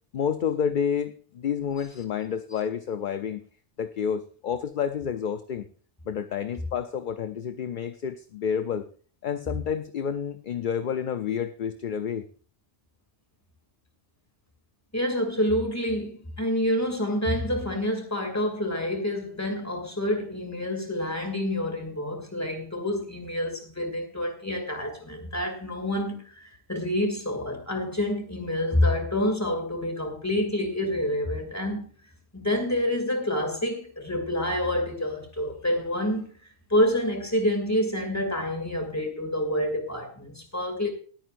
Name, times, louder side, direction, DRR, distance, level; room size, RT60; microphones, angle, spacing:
voice 1, 0.1-3.4 3.8-5.7 6.1-8.9 9.2-12.2, left 7 dB, 55° left, 10 dB, 0.7 m, -29 dB
voice 2, 14.9-31.8 32.3-36.3 36.7-40.9, left 1 dB, 15° left, 3 dB, 2.6 m, -27 dB
20.5 x 9.2 x 2.6 m, 0.41 s
omnidirectional pair, 1.2 m